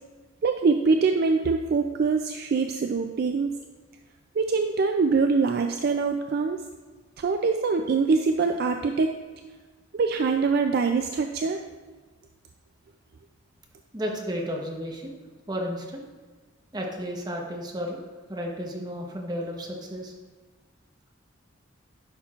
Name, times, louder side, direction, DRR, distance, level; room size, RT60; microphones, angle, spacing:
voice 1, 0.4-3.5 4.4-6.7 7.2-9.1 9.9-11.6, right 4 dB, 55° right, 5 dB, 0.3 m, -24 dB
voice 2, 13.9-15.2 15.5-16.1 16.7-18.0 18.3-20.1, equal, 20° right, 0 dB, 0.9 m, -33 dB
10.0 x 5.9 x 2.4 m, 1.3 s
head